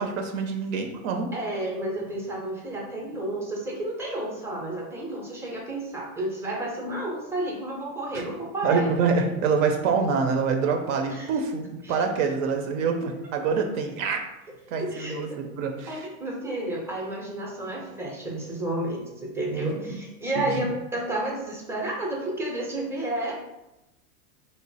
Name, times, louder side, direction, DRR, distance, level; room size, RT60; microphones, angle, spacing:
voice 1, 0.0-1.3 8.1-8.2 8.6-14.2 14.7-16.1 19.5-20.0 20.4-20.7, right 5 dB, 60° right, 4 dB, 0.6 m, -26 dB
voice 2, 1.3-8.9 11.1-11.3 11.9-12.0 14.8-15.4 15.9-23.3, right 1 dB, 5° right, -2 dB, 0.5 m, -31 dB
3.0 x 2.0 x 3.9 m, 0.94 s
supercardioid pair, 125°, 43 cm